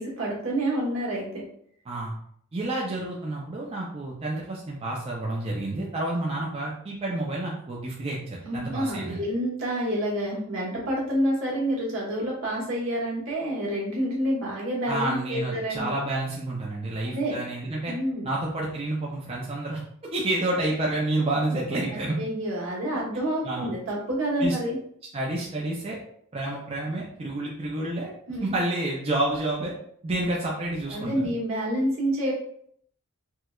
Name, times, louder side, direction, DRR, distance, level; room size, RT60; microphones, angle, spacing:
voice 1, 0.0-1.4 8.4-15.9 17.1-17.3 17.9-18.3 22.2-24.8 28.3-28.4 30.9-32.3, right 1 dB, 70° right, -4 dB, 1.3 m, -28 dB
voice 2, 2.5-9.2 14.9-17.9 18.2-19.8 20.1-22.2 23.4-23.7 24.4-24.6 25.1-26.0 26.3-28.1 28.4-29.7 30.0-31.3, right 2 dB, 30° right, -3 dB, 0.4 m, -29 dB
4.5 x 2.2 x 2.3 m, 0.65 s
head